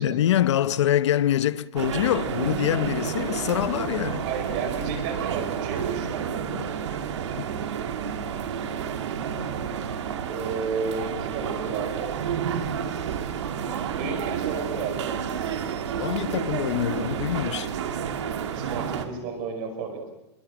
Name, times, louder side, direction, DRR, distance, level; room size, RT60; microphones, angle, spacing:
voice 1, 0.0-4.3 6.5-6.6 7.3-7.4 15.9-17.7, left 11 dB, 85° left, 0.9 m, -25 dB
sound 1, 1.8-19.1, right 8 dB, 85° right, 2.5 m, -30 dB
voice 2, 4.2-6.8 10.2-12.1 13.9-15.2 18.5-20.0, right 5 dB, 35° right, 5.2 m, -32 dB
25.5 x 22.5 x 6.2 m
supercardioid pair, 180°, 15 cm